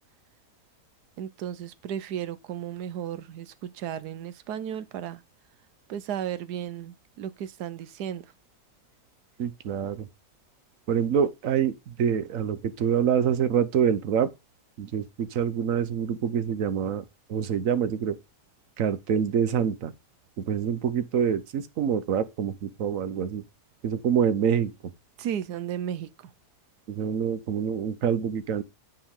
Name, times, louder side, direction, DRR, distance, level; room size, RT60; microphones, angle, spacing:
voice 1, 1.2-5.2 5.9-8.3 25.2-26.3, right 9 dB, 80° right, 1.3 m, -34 dB
voice 2, 9.4-10.1 10.9-14.3 14.8-18.2 18.8-19.9 20.4-23.4 23.8-24.7 26.9-28.6, right 8 dB, 60° right, 1.2 m, -26 dB
9.8 x 4.7 x 3.6 m
omnidirectional pair, 1.7 m